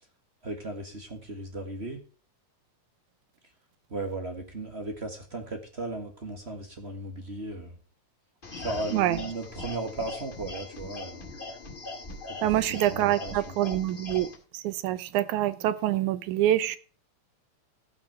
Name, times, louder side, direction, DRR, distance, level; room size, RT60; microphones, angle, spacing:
voice 1, 0.4-2.0 3.9-7.7 8.6-11.3 12.4-12.6 12.9-13.6, right 2 dB, 30° right, 1.3 m, -36 dB
sound 1, 8.4-14.3, left 2 dB, 20° left, 1.9 m, -40 dB
voice 2, 12.4-14.3 14.5-16.8, right 13 dB, 80° right, 2.2 m, -26 dB
16.0 x 6.0 x 4.8 m
omnidirectional pair, 3.5 m